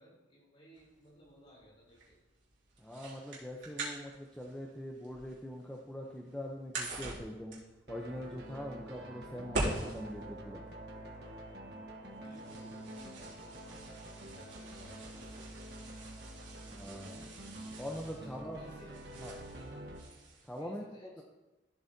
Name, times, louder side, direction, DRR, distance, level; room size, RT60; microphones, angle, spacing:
voice 1, 0.0-2.2 12.0-13.9 14.3-15.5 18.1-19.3 20.5-21.2, equal, 30° left, -4 dB, 3.4 m, -59 dB
sound 1, 0.8-20.6, right 2 dB, 85° right, 2.7 m, -45 dB
voice 2, 2.8-7.6 7.9-10.7 16.7-17.3 17.8-18.6 18.9-19.4 20.4-20.9 21.2-21.3, equal, 5° left, -1 dB, 0.7 m, -43 dB
sound 2, 7.9-20.0, right 1 dB, 60° right, 1.3 m, -47 dB
13.5 x 7.9 x 2.8 m, 1.0 s
head